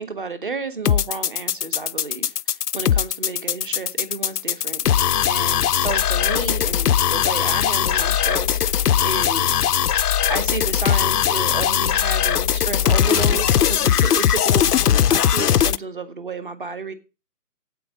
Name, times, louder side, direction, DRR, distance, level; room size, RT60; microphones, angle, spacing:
voice 1, 0.0-4.8 5.2-9.7 10.3-14.8 15.1-16.9, right 4 dB, 30° right, 1.1 m, -31 dB
sound 1, 0.9-15.8, left 9 dB, 70° left, 0.5 m, -20 dB
8.3 x 8.2 x 6.2 m
figure-of-eight pair, 165°, 48 cm